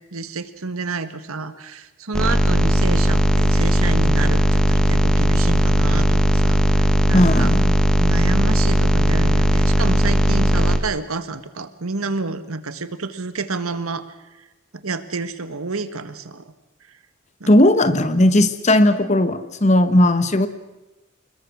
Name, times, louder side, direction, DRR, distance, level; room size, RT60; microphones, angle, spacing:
voice 1, 0.1-7.5 8.0-14.1 14.4-14.5 14.8-16.5 17.4-17.5, right 3 dB, 90° right, 11 dB, 1.5 m, -29 dB
sound 1, 2.1-10.8, equal, 5° left, 1.2 m, -17 dB
voice 2, 7.1-7.7 17.5-20.5, left 1 dB, 30° left, 12 dB, 1.1 m, -16 dB
27.5 x 21.0 x 6.3 m, 1.0 s
head